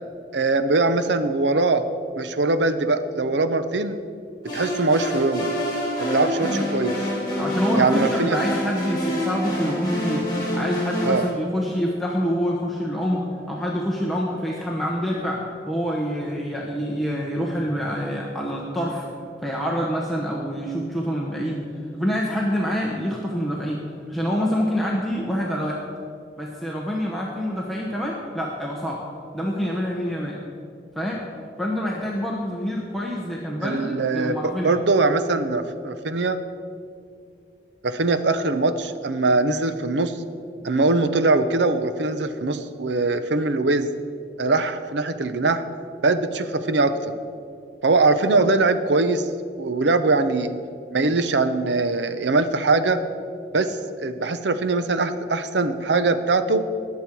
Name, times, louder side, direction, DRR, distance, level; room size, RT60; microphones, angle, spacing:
voice 1, 0.3-1.9 2.2-4.0 4.5-5.5 6.0-7.0 7.8-8.4 11.0-11.3 33.6-36.4 37.8-40.2 40.6-43.9 44.4-45.6 46.0-47.1 47.8-49.3 49.6-50.6 50.9-53.0 53.5-56.6, right 3 dB, 80° right, 11 dB, 0.7 m, -22 dB
sound 1, 4.4-11.3, equal, 25° left, 3.2 m, -27 dB
voice 2, 7.4-10.3 10.5-19.1 19.4-21.7 21.9-25.8 26.4-29.0 29.3-30.4 30.9-31.2 31.6-34.7, equal, ahead, -4 dB, 1.0 m, -26 dB
19.5 x 7.4 x 4.6 m, 2.4 s
head